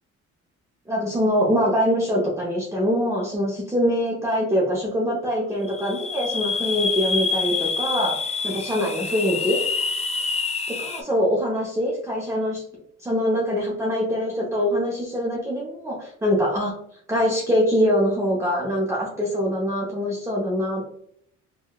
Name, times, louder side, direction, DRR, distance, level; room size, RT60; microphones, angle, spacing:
voice 1, 0.9-8.2 8.4-9.6 10.8-12.6 13.0-16.7 17.1-20.9, equal, 10° right, -5 dB, 0.7 m, -23 dB
sound 1, 5.6-11.0, left 5 dB, 25° left, 0.4 m, -27 dB
3.7 x 2.3 x 2.3 m, 0.69 s
cardioid pair, 90°, 30 cm